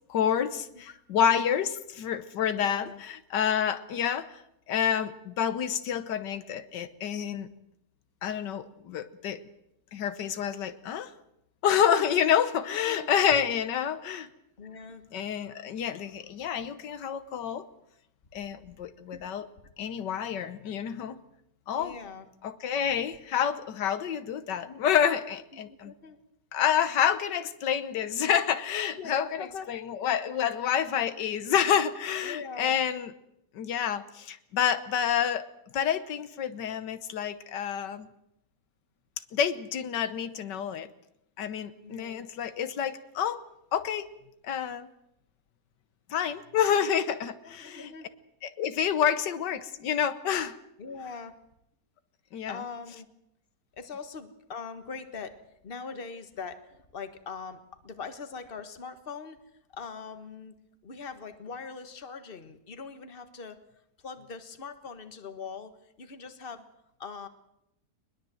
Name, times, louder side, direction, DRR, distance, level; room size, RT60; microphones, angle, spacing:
voice 1, 0.1-4.3 4.7-7.5 8.2-9.4 9.9-11.1 11.6-14.3 15.1-17.6 18.3-19.5 19.8-21.2 21.7-21.9 22.4-25.9 26.5-33.1 33.6-35.4 35.7-38.1 39.3-40.9 41.4-43.4 43.7-44.1 44.4-44.9 46.1-47.9 48.4-50.6 52.3-52.6, left 8 dB, 90° left, 12 dB, 1.7 m, -28 dB
voice 2, 2.5-3.0 12.1-12.3 12.8-13.1 14.6-15.0 18.4-18.5 19.1-19.2 21.8-22.3 25.5-26.2 29.0-29.7 32.2-32.8 41.8-42.2 47.4-48.1 50.8-51.4 52.5-53.1 53.8-55.4 55.6-59.4 59.7-60.5 60.8-63.6 64.0-66.7 67.0-67.3, left 5 dB, 35° left, 9 dB, 1.6 m, -42 dB
21.5 x 21.0 x 7.7 m, 0.79 s
omnidirectional pair, 1.8 m